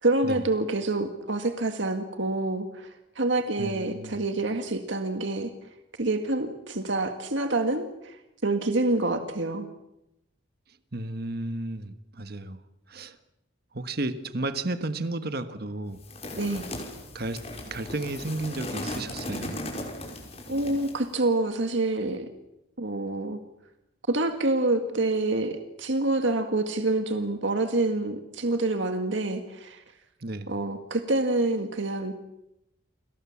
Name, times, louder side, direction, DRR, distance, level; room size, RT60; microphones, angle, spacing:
voice 1, 0.0-5.5 6.0-9.7 16.4-16.7 20.5-22.3 22.8-23.4 24.1-29.8 30.5-32.1, right 2 dB, 70° right, 6 dB, 1.9 m, -27 dB
voice 2, 3.6-4.2 10.9-12.6 12.9-13.2 13.7-16.0 17.1-17.4 17.7-19.5 30.2-30.5, right 2 dB, 50° right, 10 dB, 1.5 m, -33 dB
sound 1, 16.0-21.1, left 1 dB, 30° left, 5.6 m, -37 dB
30.0 x 22.5 x 7.3 m, 0.86 s
head